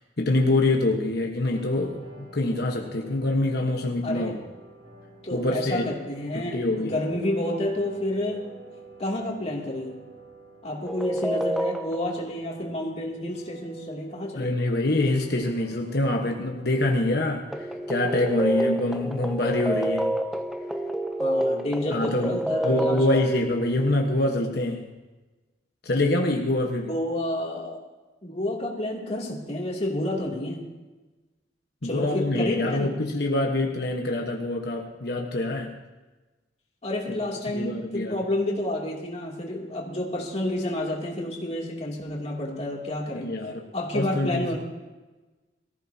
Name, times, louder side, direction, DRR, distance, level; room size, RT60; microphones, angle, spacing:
voice 1, 0.0-4.4 5.3-5.8 6.3-7.0 14.3-20.2 21.9-24.9 25.8-26.9 31.8-35.8 37.1-37.2 37.5-38.2 43.1-43.6 43.9-44.6, left 2 dB, 60° left, 1 dB, 1.2 m, -25 dB
sound 1, 1.5-20.4, right 3 dB, 65° right, 3.4 m, -49 dB
voice 2, 4.0-4.4 5.2-8.5 9.0-9.9 10.6-14.5 21.2-23.3 26.9-27.8 28.2-30.7 31.8-32.9 36.8-43.3 43.7-44.6, left 1 dB, 35° left, -2 dB, 2.7 m, -30 dB
sound 2, 10.9-12.2 17.5-23.5, right 1 dB, ahead, 0.6 m, -28 dB
22.5 x 14.5 x 2.8 m, 1.2 s
head